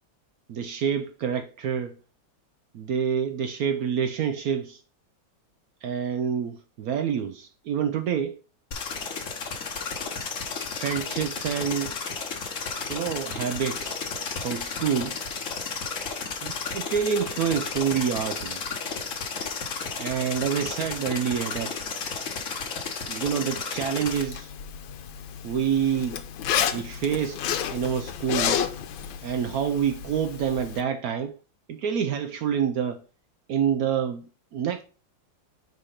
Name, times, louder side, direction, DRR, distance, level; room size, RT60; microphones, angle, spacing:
voice 1, 0.5-2.0 2.7-4.8 5.8-8.4 10.7-12.0 12.6-14.0 14.4-15.2 16.4-18.6 20.0-21.7 23.1-24.5 25.4-26.2 26.7-27.4 27.7-28.6 29.2-31.4 31.7-33.0 33.5-34.8, right 8 dB, 80° right, 0.8 m, -27 dB
sound 1, 8.7-24.2, left 5 dB, 50° left, 1.2 m, -33 dB
Zipper (clothing), 24.1-30.8, left 9 dB, 85° left, 1.5 m, -31 dB
5.0 x 4.0 x 5.6 m
omnidirectional pair, 2.1 m